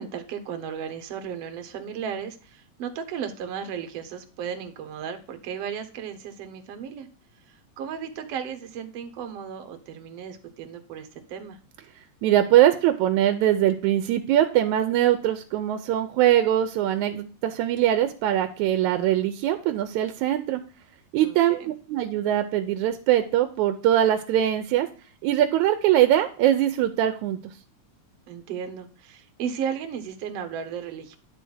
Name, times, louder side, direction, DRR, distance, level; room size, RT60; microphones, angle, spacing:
voice 1, 0.0-7.1 7.8-11.6 21.2-21.7 28.3-31.2, right 7 dB, 65° right, 7 dB, 2.0 m, -35 dB
voice 2, 12.2-20.6 21.1-24.9 25.2-27.4, right 12 dB, 90° right, 8 dB, 2.1 m, -22 dB
10.0 x 3.4 x 6.2 m, 0.38 s
omnidirectional pair, 3.3 m